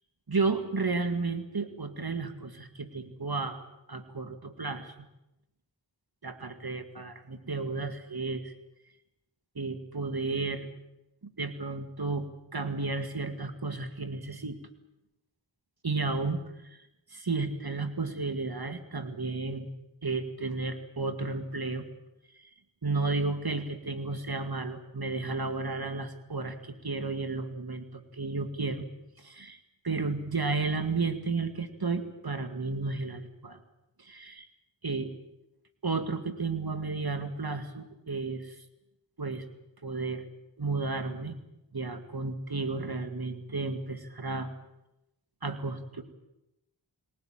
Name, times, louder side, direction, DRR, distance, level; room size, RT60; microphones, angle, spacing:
voice 1, 0.3-3.6 3.9-4.9 6.2-8.5 9.6-10.7 11.2-14.6 15.8-19.7 20.0-21.9 22.3-22.5 22.8-28.9 29.2-29.6 29.8-33.6 34.0-34.5 34.8-35.1 35.8-38.6 39.2-39.4 39.8-40.3 40.6-41.4 41.7-44.5 45.4-46.0, right 3 dB, 50° right, 8 dB, 2.2 m, -33 dB
27.5 x 17.5 x 8.9 m, 0.89 s
wide cardioid pair, 40°, 46 cm